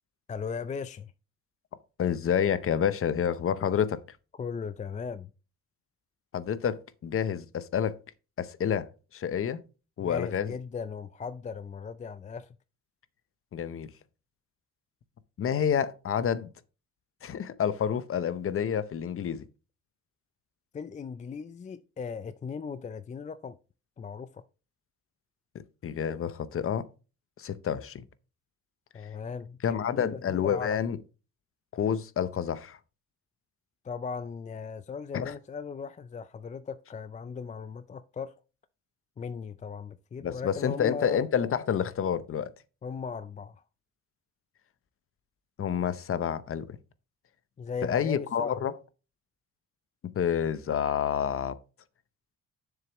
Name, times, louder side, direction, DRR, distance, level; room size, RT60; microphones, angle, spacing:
voice 1, 0.3-1.1 4.4-5.3 10.0-12.6 20.7-23.6 24.0-24.4 28.9-30.8 33.8-38.3 39.2-41.2 42.8-43.6 47.6-48.6, left 5 dB, 25° left, 0.4 m, -38 dB
voice 2, 2.0-4.0 6.3-8.0 8.4-9.6 10.0-10.5 13.5-13.9 15.4-16.5 17.2-19.4 25.8-26.9 27.4-28.0 29.6-31.0 31.7-32.8 35.1-35.3 40.2-42.5 45.6-46.8 47.8-48.7 50.2-51.6, left 8 dB, 45° left, 0.7 m, -28 dB
7.1 x 6.6 x 3.0 m
cardioid pair, 90°, 30 cm